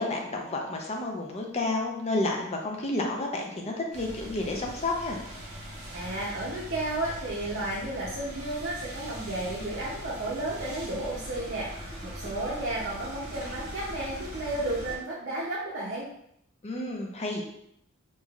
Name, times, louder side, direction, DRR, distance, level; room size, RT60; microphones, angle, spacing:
voice 1, 0.0-5.2 16.6-17.4, left 2 dB, 30° left, 1 dB, 0.5 m, -30 dB
sound 1, 3.9-15.0, equal, 35° right, 1.2 m, -41 dB
voice 2, 5.9-16.1, right 1 dB, 55° right, -5 dB, 0.6 m, -33 dB
3.5 x 2.6 x 2.3 m, 0.74 s
head